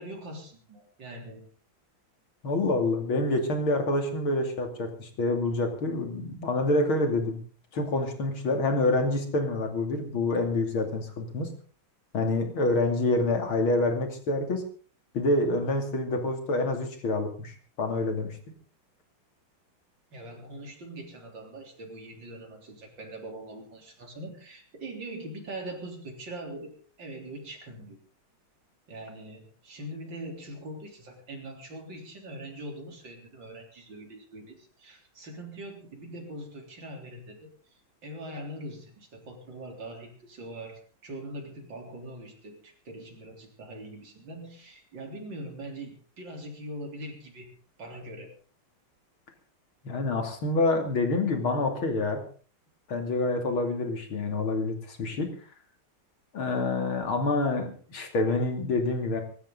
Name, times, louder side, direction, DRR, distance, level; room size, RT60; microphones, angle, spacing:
voice 1, 0.0-1.5 20.1-28.0 28.9-37.5 38.0-47.5 47.8-48.3, right 1 dB, 60° right, 1 dB, 4.3 m, -42 dB
voice 2, 2.4-7.4 7.7-11.5 12.1-14.6 15.1-18.4 49.8-52.2 52.9-55.3 56.3-59.2, left 2 dB, 80° left, 4 dB, 3.6 m, -27 dB
24.0 x 12.5 x 3.9 m, 0.40 s
omnidirectional pair, 2.2 m